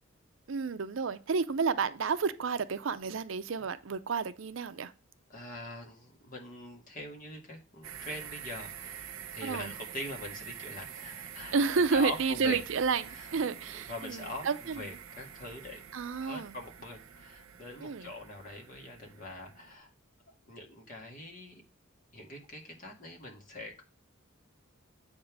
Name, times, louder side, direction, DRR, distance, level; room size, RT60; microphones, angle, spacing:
voice 1, 0.5-4.9 9.4-9.7 11.5-15.0 15.9-16.5 17.8-18.1, right 5 dB, 65° right, 0.5 m, -31 dB
voice 2, 5.3-9.0 9.3-11.6 11.9-12.6 13.1-13.3 13.7-14.5 14.7-15.8 16.2-19.9 20.3-21.6 22.1-23.8, left 2 dB, 40° left, 2.0 m, -43 dB
sound 1, 7.8-19.7, right 8 dB, 85° right, 0.9 m, -47 dB
7.9 x 3.7 x 6.1 m
head